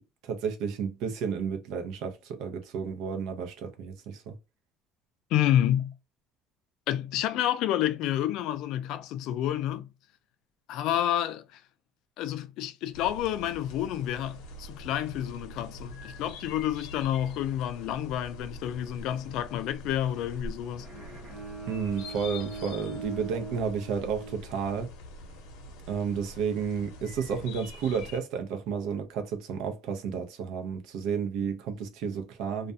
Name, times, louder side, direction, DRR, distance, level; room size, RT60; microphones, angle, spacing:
voice 1, 0.2-4.3 21.7-24.9 25.9-32.7, right 6 dB, 65° right, 0.6 m, -32 dB
voice 2, 5.3-5.9 6.9-9.9 10.7-11.6 12.2-20.9, left 11 dB, 60° left, 0.3 m, -29 dB
sound 1, 12.9-28.2, left 1 dB, 90° left, 0.7 m, -45 dB
Bowed string instrument, 20.8-25.0, right 3 dB, 20° right, 1.0 m, -42 dB
2.4 x 2.2 x 2.6 m
cardioid pair, 165°, 0 cm